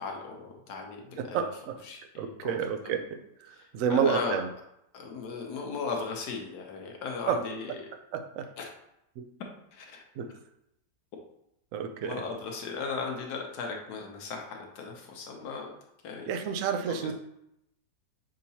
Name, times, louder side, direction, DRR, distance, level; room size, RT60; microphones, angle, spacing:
voice 1, 0.0-1.5 1.8-2.6 2.8-3.0 3.5-4.4 4.9-7.7 8.6-8.7 9.7-10.0 12.0-15.7 16.0-16.3 16.8-17.1, left 4 dB, 75° left, 1 dB, 1.4 m, -37 dB
voice 2, 1.2-1.7 2.2-3.0 3.4-4.5 7.3-7.4 8.1-8.5 9.2-9.3 10.2-10.3 11.7-12.2 16.3-17.1, right 7 dB, 70° right, 6 dB, 0.8 m, -29 dB
6.3 x 2.9 x 2.7 m, 0.80 s
omnidirectional pair, 1.8 m